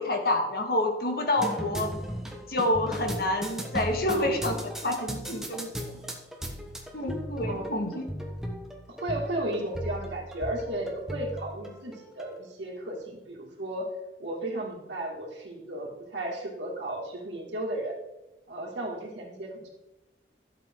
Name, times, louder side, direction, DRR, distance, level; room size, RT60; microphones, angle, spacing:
voice 1, 0.0-1.9 2.5-5.9 6.9-8.1, left 1 dB, 55° left, 2 dB, 2.0 m, -28 dB
sound 1, 1.4-12.3, equal, 5° right, 1.2 m, -37 dB
voice 2, 7.5-8.0 8.9-13.9 14.2-17.9 18.5-19.7, right 1 dB, 90° right, -2 dB, 2.3 m, -34 dB
12.5 x 7.7 x 3.8 m, 1.0 s
head